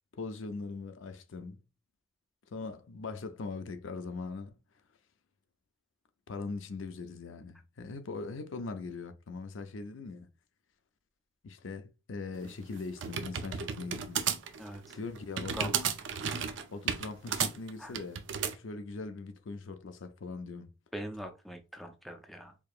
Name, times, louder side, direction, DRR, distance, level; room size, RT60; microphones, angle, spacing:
voice 1, 0.1-1.6 2.5-4.6 6.3-10.3 11.4-14.3 14.9-15.7 16.7-18.3 18.5-20.8, left 3 dB, 75° left, 0.5 m, -41 dB
sound 1, 12.4-18.6, right 7 dB, 65° right, 0.5 m, -33 dB
voice 2, 14.6-15.0 15.5-15.9 17.8-17.9 20.9-22.6, equal, ahead, 0.4 m, -42 dB
4.6 x 2.8 x 2.4 m
head